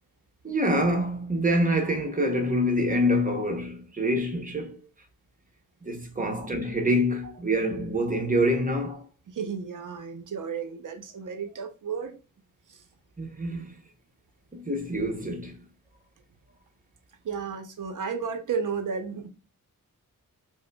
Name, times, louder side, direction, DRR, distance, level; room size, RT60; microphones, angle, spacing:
voice 1, 0.4-4.8 5.8-9.1 13.2-13.7 14.5-15.5, equal, 25° right, 0.7 m, -26 dB
voice 2, 9.3-12.2 12.7-12.8 17.2-19.3, right 6 dB, 65° right, 0.6 m, -33 dB
4.9 x 2.1 x 2.2 m
wide cardioid pair, 105°, 34 cm